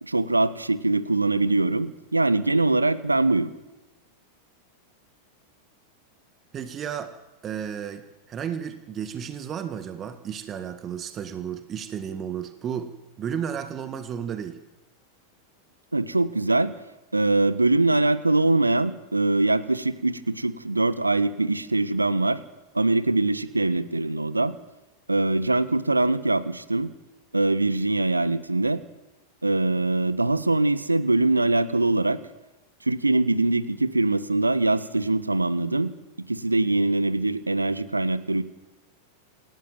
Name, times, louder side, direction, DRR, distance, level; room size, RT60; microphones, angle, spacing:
voice 1, 0.0-3.5 15.9-16.7 17.1-22.4 22.7-24.5 25.1-26.9 27.3-28.8 29.4-32.2 32.8-35.9 36.3-38.4, right 2 dB, 80° right, 14 dB, 1.3 m, -23 dB
voice 2, 6.5-7.1 7.4-14.6, right 8 dB, 25° right, 8 dB, 1.9 m, -33 dB
27.5 x 16.5 x 7.7 m, 1.0 s
figure-of-eight pair, 90°, 0 cm